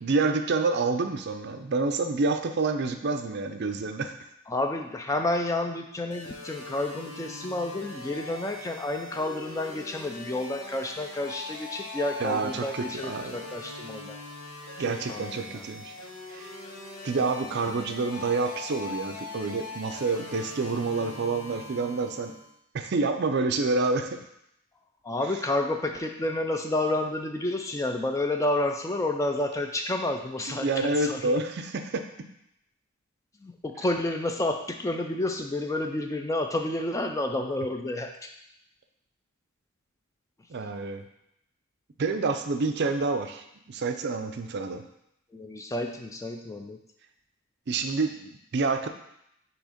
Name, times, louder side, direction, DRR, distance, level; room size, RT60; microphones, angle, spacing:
voice 1, 0.0-4.1 12.2-13.4 14.8-15.9 16.3-16.5 17.0-22.3 22.7-24.2 30.5-32.0 40.5-41.0 42.0-44.8 47.7-48.9, right 3 dB, 50° right, 7 dB, 0.4 m, -28 dB
voice 2, 4.5-14.2 14.8-15.7 25.0-31.4 33.4-38.3 45.3-46.8, left 1 dB, 15° left, 4 dB, 0.3 m, -30 dB
sound 1, 6.1-22.5, left 3 dB, 85° left, 1.1 m, -41 dB
6.3 x 3.0 x 5.0 m, 0.78 s
head